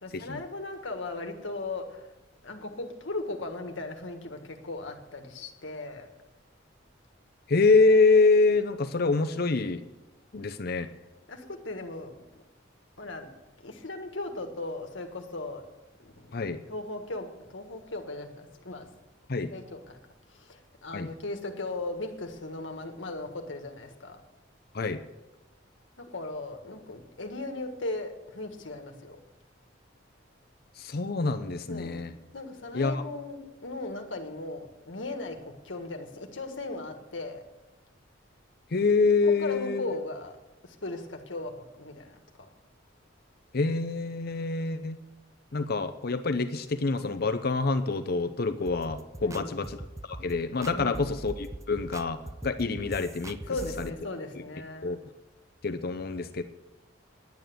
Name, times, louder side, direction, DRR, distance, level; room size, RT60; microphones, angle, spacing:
voice 1, 0.0-2.1 2.4-6.1 11.3-12.4 13.0-13.3 13.6-15.7 16.0-16.4 16.7-19.0 19.5-20.0 20.3-24.2 26.0-29.2 31.7-32.1 32.3-37.5 39.2-40.4 40.6-42.5 49.2-49.7 50.7-51.1 53.5-54.9, left 2 dB, 80° left, 5 dB, 1.6 m, -37 dB
voice 2, 7.5-9.8 10.3-10.9 16.3-16.6 19.3-19.5 20.9-21.1 24.7-25.0 30.8-32.1 32.7-33.0 38.7-39.8 43.5-45.0 45.5-49.8 50.1-53.4 53.8-53.9 54.8-55.0 55.6-56.4, left 3 dB, 55° left, 9 dB, 0.7 m, -26 dB
sound 1, 48.7-53.9, right 2 dB, 15° right, 0.4 m, -42 dB
10.5 x 9.1 x 7.9 m, 1.0 s
head